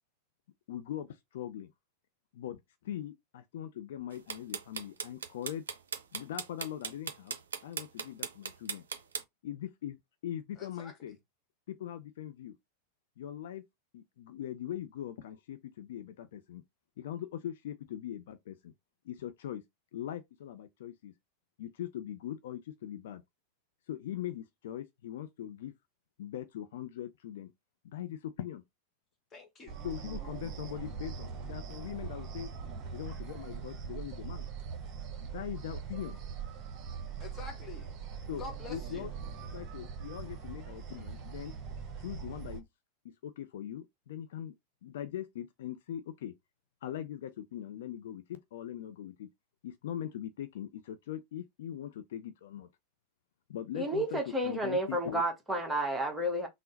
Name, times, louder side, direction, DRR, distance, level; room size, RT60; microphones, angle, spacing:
voice 1, 0.7-1.7 2.3-5.6 6.1-7.4 7.6-8.8 9.4-10.0 10.2-11.2 11.7-12.6 13.2-13.6 13.9-16.6 17.0-18.7 19.0-19.6 19.9-21.1 21.6-23.2 23.9-25.7 26.2-27.5 27.8-28.6 29.8-32.5 32.9-34.5 35.2-36.2 38.3-39.1 39.5-41.6 42.0-42.7 43.0-44.5 44.8-46.3 46.8-49.3 49.6-52.7 53.5-55.2, left 11 dB, 55° left, 0.4 m, -41 dB
sound 1, 4.1-9.2, right 6 dB, 65° right, 0.5 m, -37 dB
voice 2, 10.6-10.9 29.3-29.8 37.2-37.9 38.4-39.1, left 4 dB, 20° left, 1.2 m, -46 dB
sound 2, 29.7-42.6, right 6 dB, 35° right, 1.0 m, -42 dB
voice 3, 53.7-56.5, right 1 dB, 5° right, 1.0 m, -31 dB
3.7 x 2.0 x 3.9 m
figure-of-eight pair, 90°, 0 cm